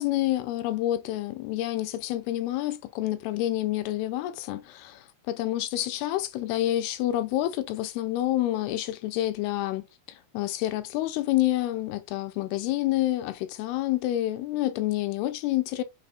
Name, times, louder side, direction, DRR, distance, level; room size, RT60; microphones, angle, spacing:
voice 1, 0.0-15.8, left 14 dB, 85° left, 2.4 m, -28 dB
5.8 x 3.4 x 2.4 m
omnidirectional pair, 4.5 m